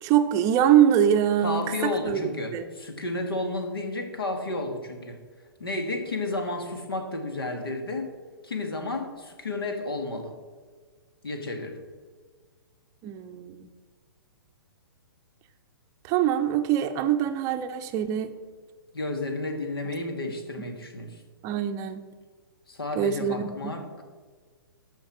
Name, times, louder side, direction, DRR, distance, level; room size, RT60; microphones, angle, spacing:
voice 1, 0.0-2.2 2.5-2.6 13.0-13.7 16.0-18.3 21.4-22.0 23.0-23.7, right 10 dB, 25° right, 8 dB, 0.6 m, -23 dB
voice 2, 1.4-5.2 5.6-8.1 8.4-10.3 11.2-11.8 18.9-21.2 22.7-24.0, left 2 dB, 75° left, 5 dB, 1.9 m, -32 dB
14.0 x 5.8 x 4.6 m, 1.5 s
figure-of-eight pair, 120°, 12 cm